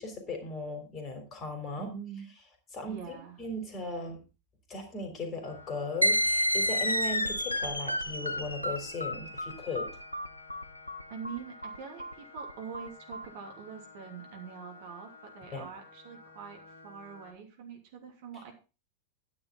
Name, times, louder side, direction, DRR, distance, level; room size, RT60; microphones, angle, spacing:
voice 1, 0.0-1.9 2.7-4.2 4.7-9.9 15.5-15.6, left 2 dB, 25° left, 5 dB, 3.5 m, -37 dB
voice 2, 1.8-2.3 2.9-3.4 11.1-18.5, right 6 dB, 50° right, 2 dB, 2.9 m, -44 dB
sound 1, 5.4-17.3, left 3 dB, 65° left, 2.6 m, -53 dB
sound 2, 6.0-13.3, equal, 85° left, 0.6 m, -30 dB
11.0 x 9.7 x 3.8 m, 0.31 s
figure-of-eight pair, 90°, 0 cm